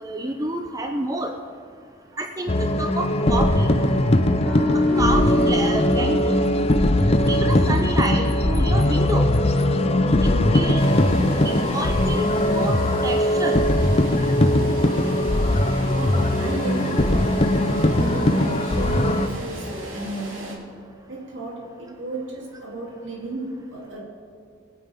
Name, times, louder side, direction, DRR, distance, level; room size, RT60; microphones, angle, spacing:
voice 1, 0.0-1.4 2.2-3.7 4.7-6.4 7.3-9.3 10.2-10.8 11.4-12.7 13.0-13.6, right 1 dB, 15° right, 4 dB, 0.5 m, -28 dB
sound 1, 2.5-19.3, left 1 dB, 30° left, 0.6 m, -20 dB
sound 2, 4.4-7.7 8.0-8.2, left 2 dB, 5° left, 1.4 m, -26 dB
sound 3, 10.8-20.6, right 2 dB, 85° right, 2.3 m, -37 dB
voice 2, 15.8-17.4 17.8-20.7 21.1-24.0, right 1 dB, 70° right, -3 dB, 3.0 m, -33 dB
21.0 x 8.9 x 3.6 m, 2.3 s
head